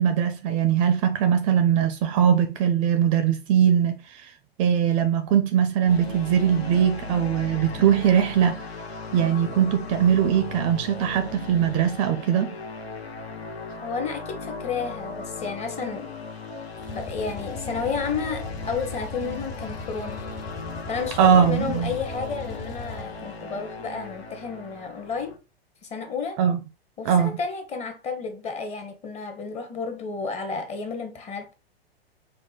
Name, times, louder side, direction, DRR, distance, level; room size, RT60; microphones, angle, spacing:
voice 1, 0.0-4.3 4.6-8.6 9.1-12.5 21.2-21.9 26.4-26.6 27.0-27.4, right 8 dB, 35° right, 0.4 m, -21 dB
sound 1, 5.9-25.4, left 4 dB, 75° left, 0.9 m, -37 dB
voice 2, 13.8-16.1 16.9-20.2 20.9-25.4 25.8-26.4 27.0-31.5, left 5 dB, 20° left, 0.8 m, -32 dB
sound 2, 16.8-23.3, left 3 dB, 40° left, 1.3 m, -39 dB
4.6 x 2.1 x 3.9 m
hypercardioid pair, 110°, 31 cm